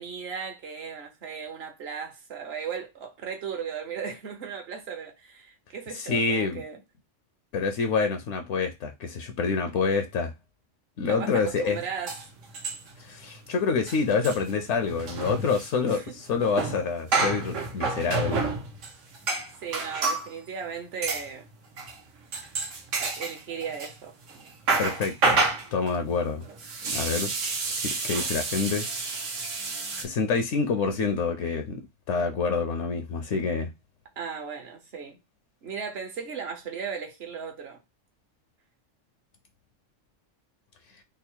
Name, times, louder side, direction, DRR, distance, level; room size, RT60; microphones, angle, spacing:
voice 1, 0.0-6.8 11.0-12.2 15.9-16.1 19.6-21.5 23.0-24.1 34.2-35.2 35.6-37.8, right 6 dB, 55° right, 1.0 m, -36 dB
voice 2, 5.9-6.6 7.5-10.3 11.0-11.8 13.0-18.4 24.8-25.4 25.7-26.4 26.9-27.3 27.7-28.9 30.0-31.8 32.1-33.7, left 5 dB, 70° left, 0.9 m, -27 dB
sound 1, 11.7-11.8 12.1-13.1 13.3-13.5 13.7-20.3 21.0-21.3 21.8-22.0 22.3-23.9 24.3-30.0, right 3 dB, 80° right, 1.2 m, -29 dB
3.5 x 2.0 x 4.3 m
omnidirectional pair, 1.3 m